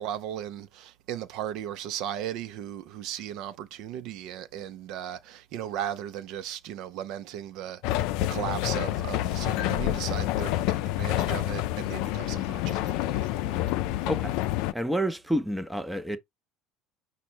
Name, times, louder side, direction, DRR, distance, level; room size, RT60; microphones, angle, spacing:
voice 1, 0.0-13.6, right 10 dB, 65° right, 0.5 m, -36 dB
sound 1, 7.8-14.7, left 15 dB, 70° left, 0.4 m, -28 dB
voice 2, 14.0-14.4 14.7-16.2, equal, 5° right, 0.6 m, -29 dB
5.2 x 2.2 x 4.3 m
cardioid pair, 130°, 0 cm